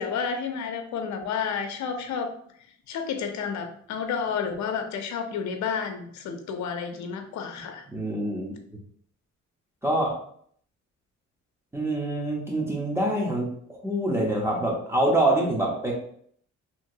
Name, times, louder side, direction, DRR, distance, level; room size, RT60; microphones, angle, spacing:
voice 1, 0.0-2.3 2.9-7.9, left 6 dB, 70° left, 6 dB, 0.6 m, -31 dB
voice 2, 7.9-8.5 9.8-10.1 11.7-15.9, right 1 dB, 10° right, -2 dB, 0.9 m, -25 dB
2.9 x 2.8 x 2.7 m, 0.62 s
cardioid pair, 90°, 30 cm